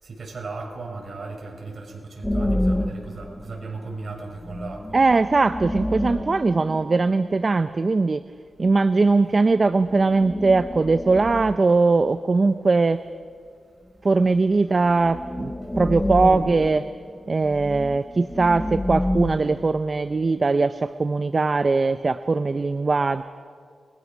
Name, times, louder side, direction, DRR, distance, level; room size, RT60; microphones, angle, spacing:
voice 1, 0.0-5.0, right 3 dB, 55° right, 0 dB, 6.2 m, -36 dB
sound 1, 2.2-3.8 4.1-4.2 4.3-7.5 9.8-11.9 14.4-14.5 14.8-19.6, left 1 dB, 10° left, 1.0 m, -29 dB
voice 2, 4.9-8.3 8.6-13.0 14.0-16.9 17.3-23.2, right 3 dB, 40° right, 12 dB, 0.6 m, -20 dB
29.0 x 21.5 x 6.2 m, 2.2 s
wide cardioid pair, 95°, 0 cm